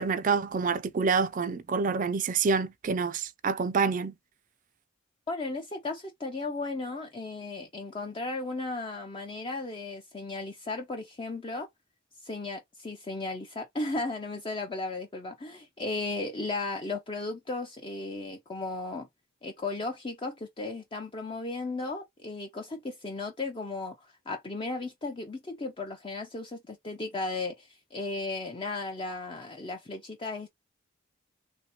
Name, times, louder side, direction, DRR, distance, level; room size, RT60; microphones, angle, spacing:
voice 1, 0.0-4.1, right 5 dB, 40° right, 0.4 m, -27 dB
voice 2, 5.3-11.7 12.2-19.1 19.4-30.5, left 3 dB, 25° left, 0.5 m, -35 dB
3.3 x 2.8 x 2.9 m
head